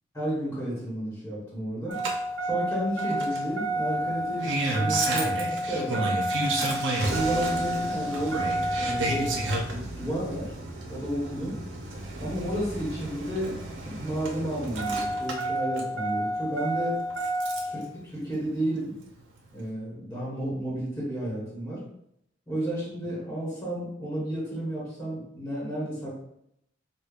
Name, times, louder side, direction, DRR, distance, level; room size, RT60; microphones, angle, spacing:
voice 1, 0.1-2.0 2.4-6.1 7.1-8.4 8.8-10.5 10.9-11.6 12.2-17.0 17.6-17.8 18.1-18.9 19.5-21.8 22.5-26.1, right 1 dB, 10° left, -7 dB, 1.2 m, -32 dB
Engine starting, 1.9-17.8 19.1-19.2, right 1 dB, 90° right, 0.7 m, -29 dB
5.0 x 2.2 x 2.4 m, 0.77 s
head